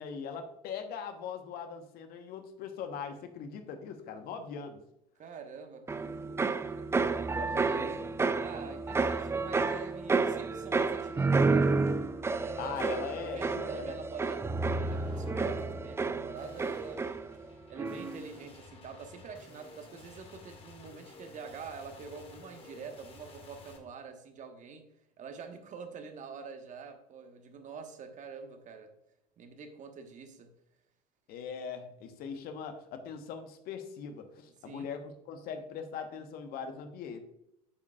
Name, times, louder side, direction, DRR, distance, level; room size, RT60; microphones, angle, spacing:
voice 1, 0.0-4.8 7.3-8.1 12.6-14.0 31.3-37.2, left 6 dB, 55° left, 7 dB, 1.1 m, -41 dB
voice 2, 5.2-6.9 7.3-8.0 8.4-11.7 12.2-12.8 13.1-17.0 17.7-24.9 25.2-28.9 29.4-30.5 34.6-34.9, right 5 dB, 40° right, 6 dB, 1.2 m, -46 dB
sound 1, 5.9-17.5 17.8-18.3, right 4 dB, 15° right, 0.4 m, -30 dB
sound 2, 10.0-10.2 10.6-11.4 11.9-12.3 13.4-14.0 14.9-23.8, left 3 dB, 30° left, 1.8 m, -54 dB
8.5 x 7.2 x 2.3 m, 0.83 s
hypercardioid pair, 65°, 19 cm